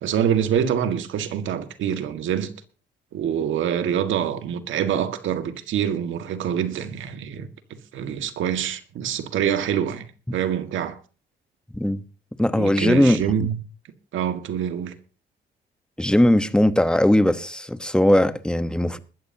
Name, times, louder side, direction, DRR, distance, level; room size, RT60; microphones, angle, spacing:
voice 1, 0.0-2.5 3.1-10.1 10.3-11.0 12.6-13.6 14.1-14.9, right 9 dB, 75° right, 1.8 m, -25 dB
voice 2, 12.4-13.2 16.0-19.0, left 1 dB, 5° left, 1.1 m, -19 dB
21.0 x 13.0 x 2.9 m
cardioid pair, 90°, 20 cm